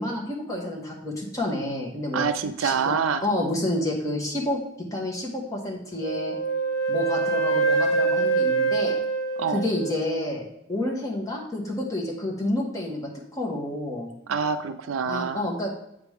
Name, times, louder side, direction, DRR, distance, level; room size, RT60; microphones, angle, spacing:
voice 1, 0.0-2.3 2.6-3.0 3.2-6.4 6.9-9.0 9.5-14.1 15.1-15.7, left 1 dB, 15° left, -2 dB, 1.5 m, -29 dB
voice 2, 2.1-3.3 9.4-9.6 14.3-15.5, right 6 dB, 80° right, 10 dB, 0.5 m, -26 dB
Wind instrument woodwind instrument, 6.0-10.2, right 4 dB, 85° left, 1.2 m, -25 dB
8.0 x 5.2 x 3.6 m, 0.80 s
head